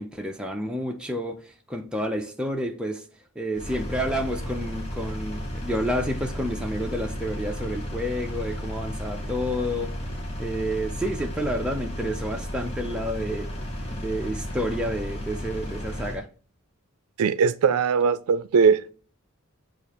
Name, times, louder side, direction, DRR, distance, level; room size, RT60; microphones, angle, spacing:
voice 1, 0.0-1.4 1.7-3.0 3.4-9.9 10.4-13.5 13.9-16.3, equal, 5° right, 0.5 m, -29 dB
Engine, 3.5-16.2, equal, 30° left, 0.9 m, -33 dB
voice 2, 17.2-18.9, right 6 dB, 90° right, 0.4 m, -20 dB
6.7 x 2.4 x 2.9 m
head